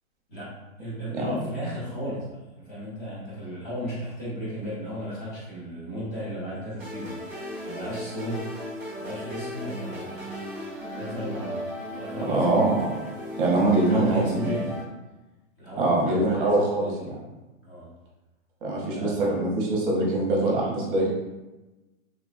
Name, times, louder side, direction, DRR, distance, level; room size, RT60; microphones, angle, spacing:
voice 1, 0.8-7.2 7.6-8.5 8.9-10.4 10.9-11.7 11.9-12.7 13.5-14.7 15.6-17.0 17.6-17.9 18.9-19.3, equal, 15° left, -8 dB, 0.5 m, -35 dB
sound 1, 6.8-14.8, equal, 5° right, 0.9 m, -36 dB
voice 2, 12.2-12.7 13.4-14.5 15.8-16.9 18.6-21.1, right 2 dB, 40° right, -3 dB, 0.8 m, -23 dB
3.2 x 2.0 x 2.4 m, 1.1 s
hypercardioid pair, 160°, 42 cm